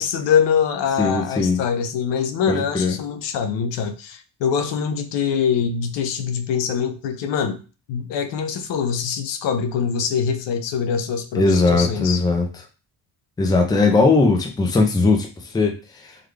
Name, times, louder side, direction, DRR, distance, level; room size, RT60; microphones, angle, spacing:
voice 1, 0.0-7.6 7.9-12.2, left 7 dB, 85° left, 8 dB, 0.7 m, -23 dB
voice 2, 1.0-1.6 2.5-2.9 11.3-12.5 13.4-16.2, left 3 dB, 10° left, 3 dB, 0.4 m, -19 dB
3.8 x 2.3 x 3.2 m, 0.32 s
cardioid pair, 160°, 42 cm